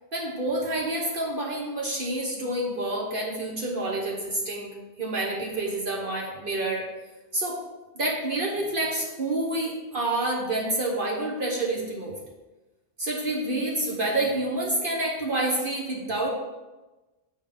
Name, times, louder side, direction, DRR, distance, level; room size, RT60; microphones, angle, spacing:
voice 1, 0.1-6.9 7.3-7.6 7.9-12.1 13.0-16.3, right 1 dB, 50° right, -3 dB, 1.2 m, -28 dB
6.9 x 4.2 x 5.1 m, 1.1 s
omnidirectional pair, 1.2 m